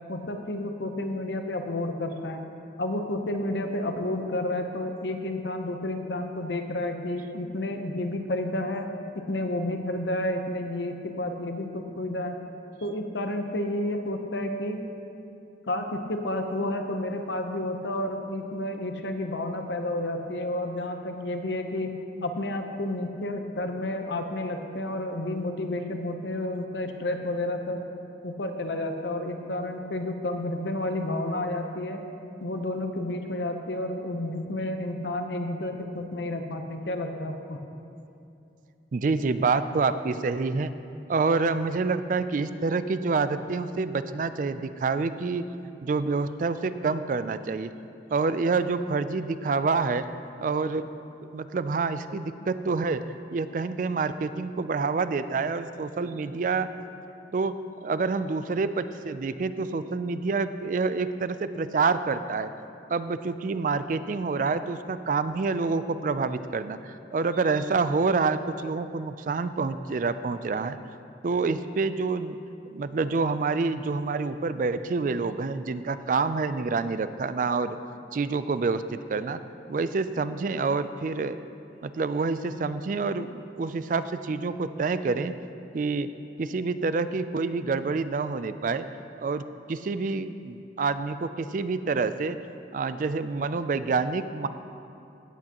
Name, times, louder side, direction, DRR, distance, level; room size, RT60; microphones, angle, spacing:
voice 1, 0.1-2.4 2.8-8.9 9.3-12.4 12.8-14.8 15.7-21.9 22.2-27.8 28.2-32.0 32.4-37.6, left 1 dB, 80° left, 5 dB, 0.8 m, -31 dB
voice 2, 38.9-40.7 41.1-45.4 45.8-47.7 48.1-50.0 50.4-50.9 51.3-53.0 53.3-56.7 57.3-57.5 57.8-62.5 62.9-70.8 71.2-72.4 72.7-77.8 78.1-79.4 79.7-81.4 81.8-85.3 85.7-86.1 86.4-88.9 89.2-89.4 89.7-92.4 92.7-94.5, right 4 dB, 45° right, 12 dB, 0.3 m, -27 dB
16.5 x 8.4 x 3.0 m, 2.7 s
head